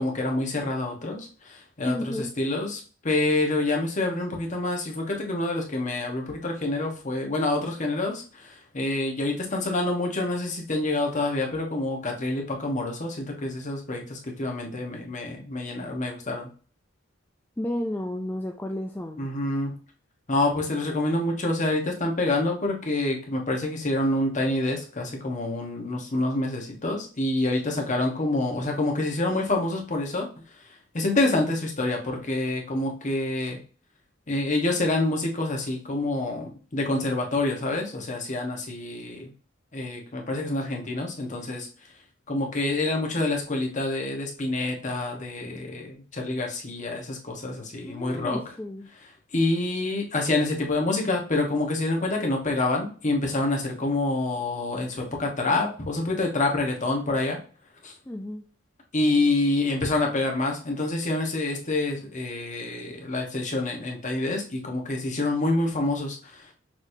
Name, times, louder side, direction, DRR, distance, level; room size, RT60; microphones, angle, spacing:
voice 1, 0.0-16.5 19.2-19.7 20.3-33.6 34.3-39.3 39.7-41.7 42.3-48.4 49.3-57.4 57.8-57.9 58.9-66.5, left 2 dB, 40° left, 1 dB, 1.1 m, -27 dB
voice 2, 1.9-2.3 17.6-19.3 27.7-27.8 47.8-48.9 58.1-58.4, left 1 dB, 10° left, 2 dB, 0.3 m, -32 dB
6.0 x 3.1 x 2.7 m, 0.38 s
head